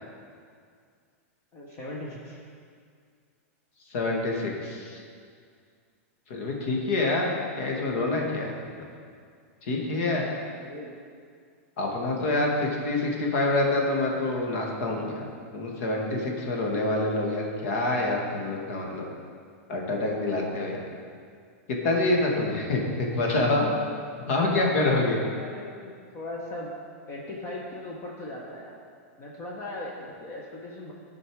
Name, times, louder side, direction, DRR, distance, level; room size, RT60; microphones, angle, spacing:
voice 1, 1.5-2.5 10.5-11.0 14.1-14.3 25.4-26.7 27.1-28.7 29.2-30.9, left 1 dB, 30° left, -3 dB, 1.2 m, -39 dB
voice 2, 3.9-5.0 6.3-8.8 9.6-10.3 11.8-19.1 19.7-20.8 21.7-23.7 24.3-25.2, left 2 dB, 60° left, 0 dB, 1.9 m, -26 dB
12.0 x 5.2 x 4.8 m, 2.2 s
supercardioid pair, 150°, 8 cm